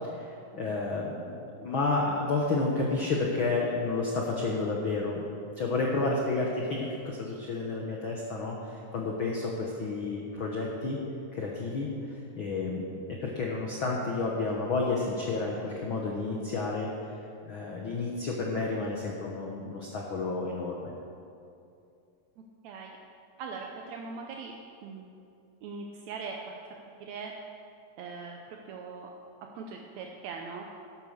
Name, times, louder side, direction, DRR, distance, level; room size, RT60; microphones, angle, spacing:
voice 1, 0.1-1.3 1.6-5.2 5.6-11.0 11.3-11.9 12.3-12.9 13.2-16.9 17.4-20.9, left 3 dB, 85° left, -1 dB, 1.1 m, -31 dB
voice 2, 23.4-24.5 24.8-25.1 25.6-26.4 27.0-27.3 28.0-29.1 29.5-30.7, right 5 dB, 75° right, 1 dB, 1.6 m, -40 dB
12.0 x 9.3 x 6.5 m, 2.6 s
omnidirectional pair, 4.1 m